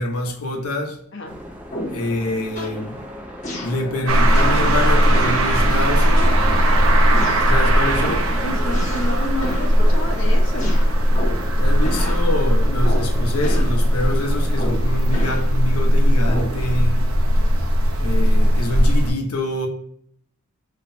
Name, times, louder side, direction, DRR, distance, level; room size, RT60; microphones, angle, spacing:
voice 1, 0.0-1.0 1.9-3.0 3.6-6.3 7.4-8.3 11.6-17.0 18.0-19.7, left 1 dB, 85° left, 1.1 m, -26 dB
sound 1, 1.2-15.2, left 1 dB, 5° right, 0.7 m, -37 dB
sound 2, 1.7-2.1 2.6-2.8 3.4-3.8 4.3-4.6 5.1-5.5 6.2-6.7 7.1-7.5 8.0-8.3 8.7-9.2 9.4-9.8 10.6-11.5 11.8-12.3 12.8-13.2 13.4-13.8 14.6-15.5 16.3-16.6, left 1 dB, 35° left, 1.2 m, -31 dB
sound 3, 4.1-19.1, equal, 65° right, 0.9 m, -18 dB
voice 2, 7.1-7.4 8.4-10.7, left 1 dB, 55° left, 1.1 m, -30 dB
5.8 x 3.2 x 2.7 m
head